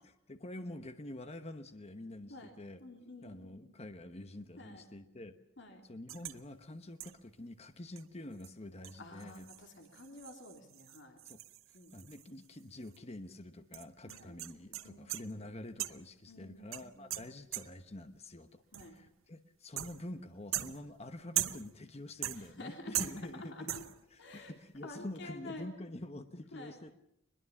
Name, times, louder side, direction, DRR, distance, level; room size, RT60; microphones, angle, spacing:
voice 1, 0.3-2.8 3.2-5.4 5.8-9.5 11.2-11.4 11.7-23.8 24.1-27.0, left 1 dB, 30° left, 9 dB, 1.1 m, -47 dB
voice 2, 2.8-3.7 4.6-4.8 5.6-5.8 9.0-11.2 11.7-11.9 14.1-14.3 14.8-15.0 16.3-17.2 18.7-19.0 22.3-23.0 23.3-23.8 24.2-24.5 24.8-25.7 26.5-27.0, left 2 dB, 60° left, 3 dB, 2.9 m, -50 dB
sound 1, 6.1-6.4 7.0-7.3 8.0-8.1 8.4-8.5 8.8-12.6 12.9-13.0 13.7-15.4 15.8-16.2 16.7-17.9 18.7-19.1 19.8-20.2 20.5-21.8 22.2-22.7 22.9-23.4 23.7-24.1, right 13 dB, 85° right, 0.9 m, -41 dB
23.0 x 21.5 x 7.2 m, 0.76 s
head